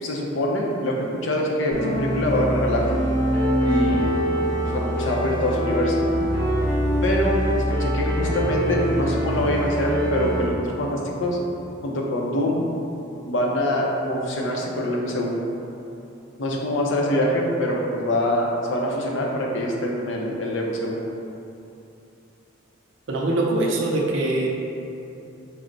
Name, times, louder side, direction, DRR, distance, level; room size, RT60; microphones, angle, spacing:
voice 1, 0.0-3.0 3.6-4.1 4.6-6.1 7.0-11.4 11.8-12.6 13.2-15.3 16.4-21.0, left 1 dB, 65° left, -2 dB, 0.6 m, -24 dB
sound 1, 1.7-10.5, equal, 15° left, 0.8 m, -24 dB
voice 2, 23.1-24.5, right 2 dB, 65° right, -2 dB, 0.5 m, -23 dB
4.4 x 2.0 x 3.8 m, 2.8 s
head